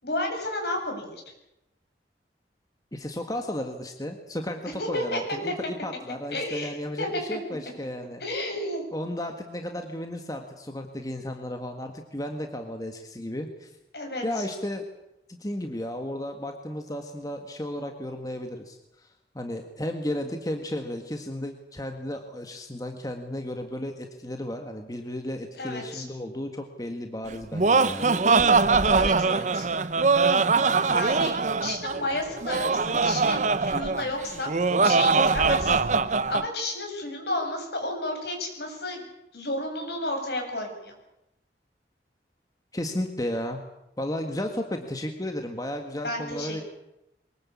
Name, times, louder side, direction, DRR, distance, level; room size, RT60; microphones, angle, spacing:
voice 1, 0.0-1.2 4.8-5.5 6.3-7.2 8.2-8.8 13.9-14.4 25.6-26.0 28.9-29.7 30.9-34.5 34.8-39.0 39.3-40.9 46.0-46.6, left 1 dB, 70° left, 2 dB, 7.7 m, -32 dB
voice 2, 2.9-8.2 8.9-13.7 14.2-14.8 15.3-28.6 42.7-43.6 44.0-46.6, left 1 dB, 20° left, 4 dB, 1.7 m, -34 dB
Laughter, 27.3-36.5, right 4 dB, 45° right, 0.8 m, -22 dB
23.5 x 21.0 x 8.5 m, 0.88 s
head